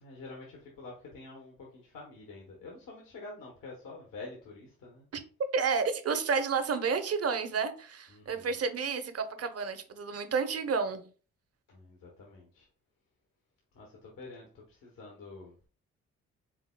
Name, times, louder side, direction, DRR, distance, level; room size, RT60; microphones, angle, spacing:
voice 1, 0.0-5.1 8.1-8.5 11.7-12.7 13.7-15.5, left 3 dB, 70° left, 1.1 m, -47 dB
voice 2, 5.5-11.1, right 5 dB, 45° right, 0.8 m, -31 dB
4.9 x 3.4 x 2.2 m
hypercardioid pair, 50°, 35 cm